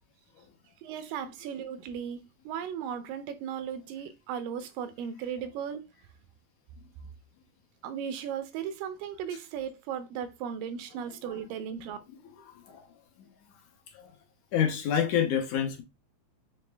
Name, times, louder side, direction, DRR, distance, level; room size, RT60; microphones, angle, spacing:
voice 1, 0.8-5.8 7.8-12.0, right 8 dB, 90° right, 2.2 m, -36 dB
voice 2, 14.5-15.8, left 8 dB, 80° left, 1.9 m, -27 dB
5.8 x 2.1 x 3.3 m
omnidirectional pair, 3.8 m